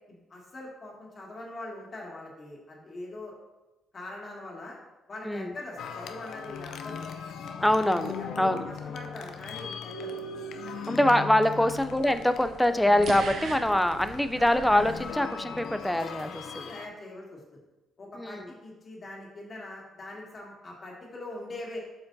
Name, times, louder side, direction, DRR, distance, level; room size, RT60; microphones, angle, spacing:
voice 1, 0.1-3.3 3.9-4.8 5.1-7.0 7.6-7.7 8.2-10.1 10.6-10.8 11.6-11.7 16.7-17.6 18.0-21.8, left 2 dB, 40° left, -3 dB, 2.0 m, -42 dB
sound 1, 5.8-16.9, left 5 dB, 75° left, 0.5 m, -39 dB
voice 2, 7.6-8.7 10.9-16.7 18.2-18.5, left 1 dB, 5° left, 10 dB, 0.4 m, -24 dB
sound 2, 11.7-15.9, right 4 dB, 60° right, 0.8 m, -41 dB
7.7 x 5.7 x 2.7 m, 1.0 s
cardioid pair, 90°, 0 cm